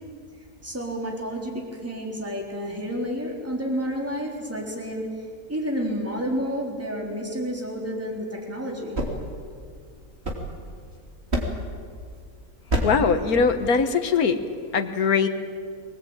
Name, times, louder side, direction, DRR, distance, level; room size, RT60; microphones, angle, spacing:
voice 1, 0.6-5.1 5.5-9.0, equal, 10° right, -1 dB, 3.8 m, -30 dB
sound 1, 8.9-10.9 11.3-11.8 12.7-13.1, equal, 45° right, 3.3 m, -28 dB
voice 2, 12.8-14.4 14.7-15.3, left 5 dB, 75° left, 7 dB, 1.8 m, -21 dB
24.0 x 19.0 x 9.0 m, 2.1 s
omnidirectional pair, 1.6 m